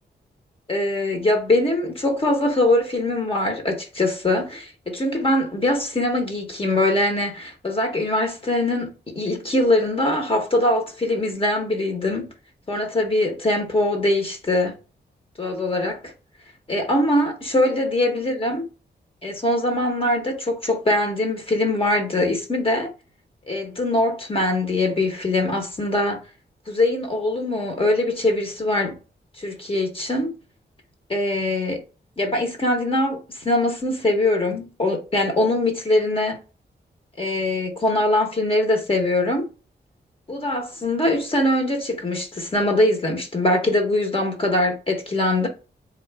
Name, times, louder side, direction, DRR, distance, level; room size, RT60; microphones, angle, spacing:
voice 1, 0.7-12.3 12.7-14.8 15.4-16.1 16.7-18.7 19.2-22.9 23.5-26.2 26.7-29.0 29.4-30.3 31.1-31.8 32.2-36.4 37.2-39.5 40.3-45.5, left 1 dB, 30° left, 1.0 m, -22 dB
4.0 x 2.5 x 3.3 m
wide cardioid pair, 100°, 18 cm